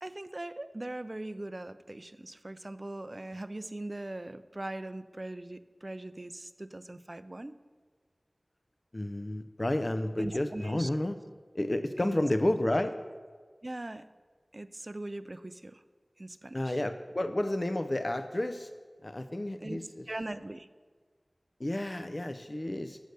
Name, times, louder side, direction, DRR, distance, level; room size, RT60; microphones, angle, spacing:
voice 1, 0.0-7.6 10.2-10.9 12.0-12.2 13.6-14.1 14.5-15.8 16.2-16.8 19.6-19.8 20.1-20.7, right 1 dB, 45° right, 12 dB, 0.3 m, -40 dB
voice 2, 8.9-11.2 11.5-12.9 16.5-18.7 19.0-20.1 21.6-23.0, left 1 dB, 45° left, 8 dB, 0.4 m, -31 dB
8.0 x 6.4 x 6.5 m, 1.5 s
wide cardioid pair, 50°, 0 cm